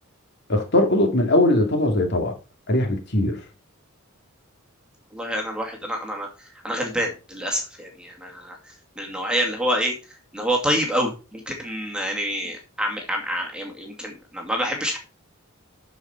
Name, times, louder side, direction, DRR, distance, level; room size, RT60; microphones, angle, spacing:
voice 1, 0.5-2.3 2.7-3.4, left 1 dB, 50° left, 2.3 m, -20 dB
voice 2, 5.1-6.3 6.6-8.6 9.0-9.9 10.3-15.0, equal, 5° right, 2.2 m, -27 dB
12.5 x 5.2 x 4.4 m
head